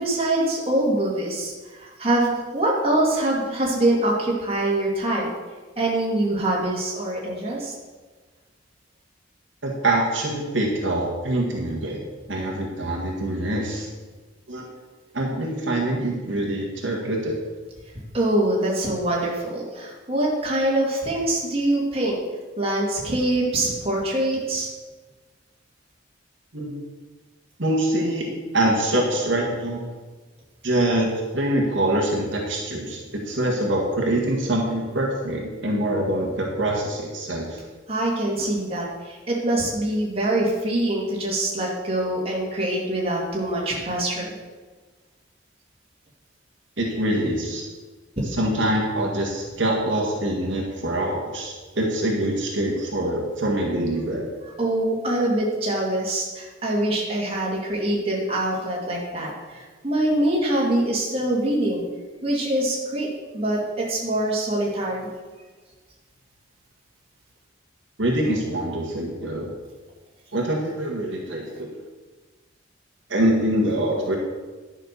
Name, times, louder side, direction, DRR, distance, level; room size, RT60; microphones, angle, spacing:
voice 1, 0.0-5.3 5.8-7.7 18.1-22.2 22.6-24.7 37.9-44.3 48.2-48.3 54.6-61.8 62.2-63.1 63.3-65.1, right 1 dB, 30° right, -4 dB, 2.5 m, -24 dB
voice 2, 9.6-13.9 14.5-14.6 15.1-17.3 26.5-26.7 27.6-28.3 28.5-29.8 30.6-31.1 31.3-37.6 46.8-47.6 48.3-54.3 68.0-69.5 70.3-71.7 73.1-74.2, right 1 dB, 65° right, -1 dB, 1.9 m, -24 dB
11.0 x 6.0 x 6.7 m, 1.3 s
head